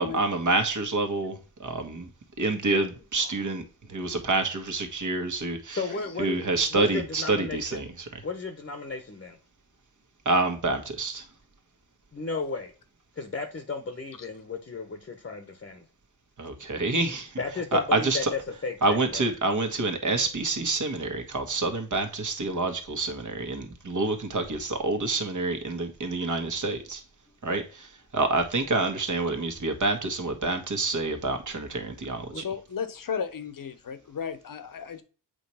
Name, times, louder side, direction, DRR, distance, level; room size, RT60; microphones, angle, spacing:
voice 1, 0.0-2.1 2.4-3.6 3.9-5.8 6.2-8.2 10.2-11.3 16.4-17.4 17.7-18.3 18.8-27.0 27.4-27.9 28.1-32.4, right 2 dB, 45° right, 1.6 m, -27 dB
voice 2, 5.7-7.6 8.2-9.4 12.1-12.7 13.2-15.8 17.4-19.3 32.3-32.4, left 4 dB, 30° left, 1.1 m, -34 dB
voice 3, 32.3-35.0, left 7 dB, 50° left, 1.0 m, -34 dB
7.9 x 3.2 x 5.7 m
cardioid pair, 80°, 43 cm